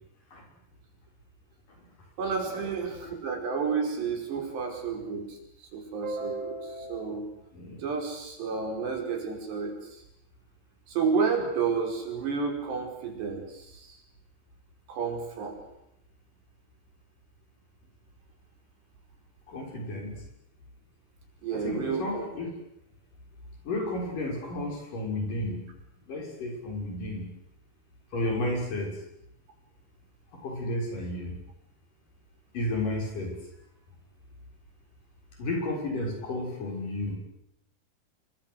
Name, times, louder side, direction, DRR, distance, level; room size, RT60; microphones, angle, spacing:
voice 1, 2.2-5.4 5.7-7.3 7.8-9.8 10.9-13.6 14.9-15.6 21.4-22.3, right 5 dB, 90° right, 3 dB, 7.5 m, -30 dB
voice 2, 7.5-7.8 19.5-20.2 21.5-22.5 23.6-25.6 26.1-27.2 28.1-29.0 30.3-31.4 32.5-33.4 35.4-37.2, left 1 dB, 50° left, 1 dB, 8.2 m, -32 dB
27.0 x 24.0 x 8.2 m, 0.81 s
omnidirectional pair, 4.7 m